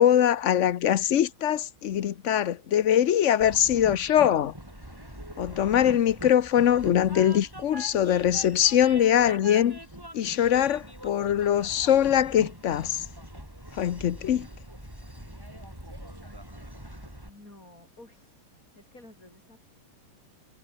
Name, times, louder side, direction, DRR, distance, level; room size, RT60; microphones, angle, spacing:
voice 1, 0.0-4.5 5.4-9.8 10.1-13.1 13.7-14.5, left 10 dB, 75° left, 0.7 m, -22 dB
Train, 3.4-17.3, equal, 10° right, 7.1 m, -43 dB
voice 2, 17.3-18.5 18.7-19.6, left 2 dB, 40° left, 8.0 m, -52 dB
omnidirectional pair, 2.3 m